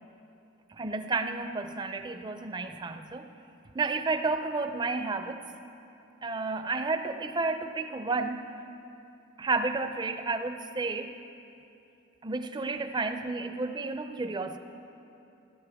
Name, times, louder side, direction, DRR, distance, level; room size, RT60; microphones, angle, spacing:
voice 1, 0.7-3.3 3.7-5.4 6.2-8.6 9.4-11.1 12.2-14.6, right 3 dB, 20° right, 8 dB, 0.4 m, -31 dB
17.0 x 12.0 x 3.5 m, 2.8 s
head